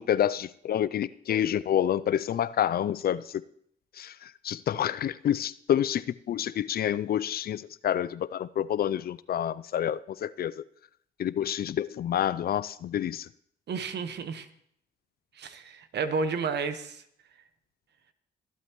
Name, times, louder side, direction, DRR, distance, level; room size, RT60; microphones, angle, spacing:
voice 1, 0.0-3.4 4.0-10.6 11.2-13.3, left 10 dB, 55° left, 0.4 m, -28 dB
voice 2, 13.7-14.5 15.4-17.0, right 4 dB, 65° right, 1.2 m, -31 dB
22.5 x 8.4 x 3.0 m
supercardioid pair, 55°, 19 cm